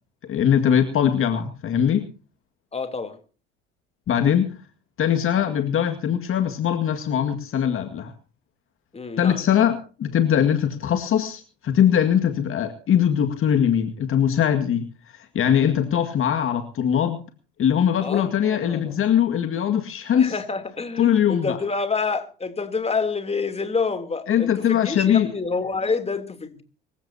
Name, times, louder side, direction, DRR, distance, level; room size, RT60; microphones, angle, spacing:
voice 1, 0.3-2.1 4.1-4.5 5.0-8.1 9.2-17.2 17.6-20.3 21.0-21.6 24.3-25.3, left 9 dB, 45° left, 2.0 m, -21 dB
voice 2, 2.7-3.2 8.9-9.4 18.0-19.0 20.1-26.6, left 4 dB, 20° left, 3.2 m, -28 dB
25.0 x 15.5 x 2.8 m
hypercardioid pair, 70°, 29 cm